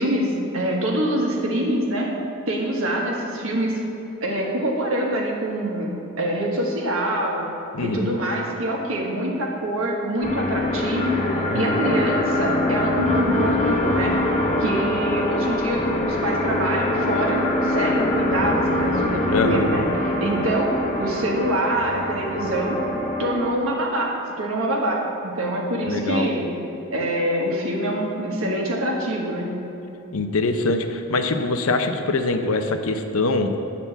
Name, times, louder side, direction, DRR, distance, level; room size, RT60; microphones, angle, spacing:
voice 1, 0.0-2.1 2.5-3.8 4.2-5.9 6.2-7.5 7.8-14.2 14.6-22.8 23.2-26.6 26.9-29.6, right 1 dB, 70° right, -1 dB, 1.4 m, -25 dB
voice 2, 7.7-8.1 11.5-11.7 19.3-19.8 25.8-26.3 30.1-33.5, left 3 dB, 75° left, 7 dB, 0.6 m, -23 dB
sound 1, 10.2-23.5, left 1 dB, 30° left, 0.9 m, -24 dB
8.4 x 4.2 x 7.0 m, 2.9 s
head